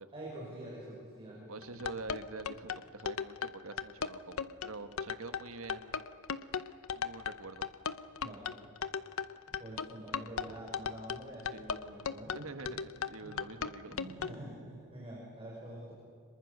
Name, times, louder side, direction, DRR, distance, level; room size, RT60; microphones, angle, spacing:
voice 1, 0.1-1.8 8.2-8.5 9.6-12.3 13.2-13.3 13.9-15.9, right 1 dB, 25° right, -5 dB, 5.9 m, -46 dB
voice 2, 1.5-6.0 6.9-7.7 11.5-11.6 12.3-13.9, right 3 dB, 65° right, 10 dB, 1.4 m, -46 dB
sound 1, 1.6-14.4, left 6 dB, 65° left, 0.8 m, -37 dB
26.5 x 23.5 x 6.6 m, 2.3 s
head